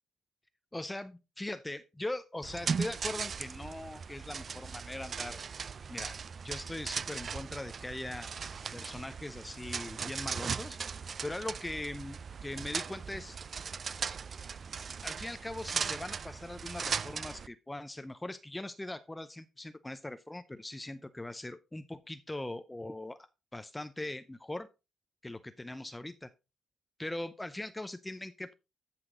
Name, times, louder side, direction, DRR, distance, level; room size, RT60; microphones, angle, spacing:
voice 1, 0.7-5.4 5.9-6.2 6.4-8.3 8.7-10.8 11.2-13.4 15.0-23.2 23.5-24.7 25.2-26.3 27.0-28.5, left 1 dB, 10° left, 10 dB, 0.6 m, -40 dB
sound 1, 2.4-17.5, right 6 dB, 45° right, 0.4 m, -38 dB
14.0 x 5.9 x 3.8 m, 0.28 s
cardioid pair, 90°, 0 cm